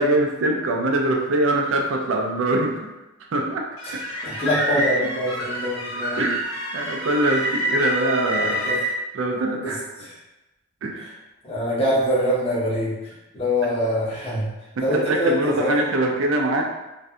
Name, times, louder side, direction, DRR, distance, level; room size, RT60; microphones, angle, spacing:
voice 1, 0.0-2.9 3.3-4.3 4.8-4.9 6.2-8.7 9.1-9.8 10.8-11.1 13.6-13.7 14.8-16.6, right 1 dB, 65° right, 1 dB, 0.4 m, -23 dB
sound 1, 3.8-8.9, equal, 85° left, 0.7 m, -27 dB
voice 2, 4.2-6.2 8.3-8.8 9.6-10.1 11.0-11.1 11.4-14.5 14.8-15.8, equal, 30° left, -9 dB, 0.8 m, -24 dB
2.6 x 2.5 x 2.2 m, 1.0 s
head